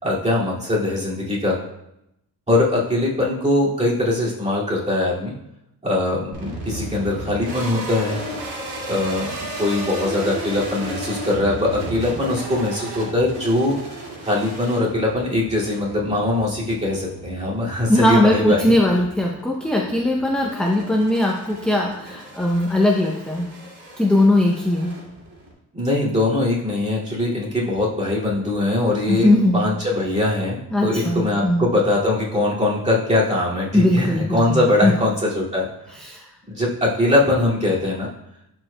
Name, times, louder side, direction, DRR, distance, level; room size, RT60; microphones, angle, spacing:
voice 1, 0.0-1.6 2.5-5.3 5.8-8.2 8.9-13.8 14.2-18.7 25.7-35.7 36.5-38.1, left 2 dB, 20° right, -6 dB, 2.3 m, -21 dB
sound 1, 6.3-25.5, right 1 dB, 90° right, 2.3 m, -34 dB
voice 2, 17.9-23.5 24.0-24.9 29.1-29.6 30.7-31.7 33.7-34.9 36.0-36.2, left 1 dB, ahead, 0 dB, 0.6 m, -19 dB
12.0 x 4.6 x 2.2 m, 0.84 s
cardioid pair, 125°, 38 cm